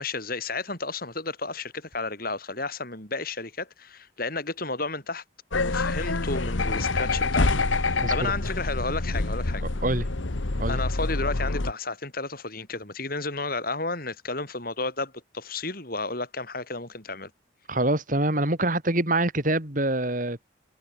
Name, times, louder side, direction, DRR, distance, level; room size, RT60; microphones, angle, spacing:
voice 1, 0.0-5.2 5.5-9.6 10.7-17.3, left 3 dB, 50° left, 7.8 m, -32 dB
sound 1, 5.5-11.7, left 3 dB, 85° left, 1.4 m, -26 dB
voice 2, 8.0-8.3 9.8-10.1 10.6-10.8 17.7-20.5, right 1 dB, 45° right, 3.7 m, -25 dB
head